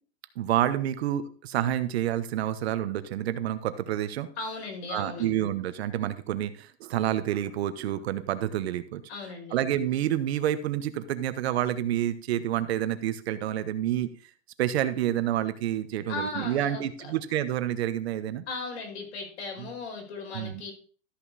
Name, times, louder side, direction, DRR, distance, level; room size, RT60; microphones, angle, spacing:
voice 1, 0.4-4.3 4.9-9.0 9.5-14.1 14.6-18.4 19.6-19.7 20.3-20.6, right 11 dB, 75° right, 12 dB, 1.1 m, -28 dB
voice 2, 4.4-5.3 9.1-9.6 16.1-17.2 18.5-20.7, left 3 dB, 85° left, 1 dB, 5.1 m, -37 dB
13.0 x 6.0 x 4.1 m, 0.42 s
supercardioid pair, 170°, 32 cm